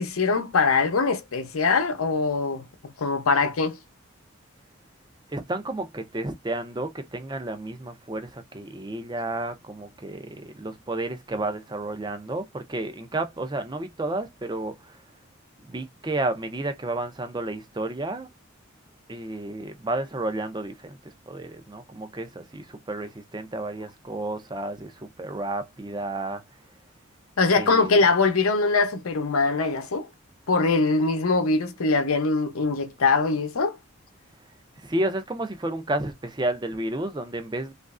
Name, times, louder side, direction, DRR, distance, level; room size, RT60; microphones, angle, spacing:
voice 1, 0.0-3.8 27.4-30.1 30.5-33.8, left 4 dB, 85° left, 0.7 m, -22 dB
voice 2, 5.3-15.0 15.6-18.3 19.1-26.4 27.5-28.1 34.8-37.7, right 2 dB, 20° right, 0.5 m, -31 dB
3.1 x 2.5 x 2.4 m
head